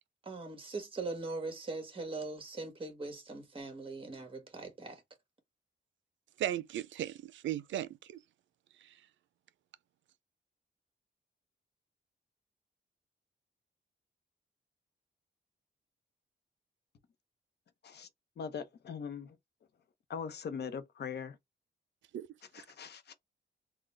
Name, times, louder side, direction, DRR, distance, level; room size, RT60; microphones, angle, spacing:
voice 1, 0.2-5.0, right 3 dB, 30° right, 1.6 m, -41 dB
voice 2, 6.4-8.2 22.1-22.3, right 12 dB, 85° right, 0.4 m, -36 dB
voice 3, 18.4-19.4 20.1-21.4 22.5-23.1, left 6 dB, 60° left, 0.8 m, -41 dB
3.8 x 2.2 x 3.2 m
wide cardioid pair, 115°, 19 cm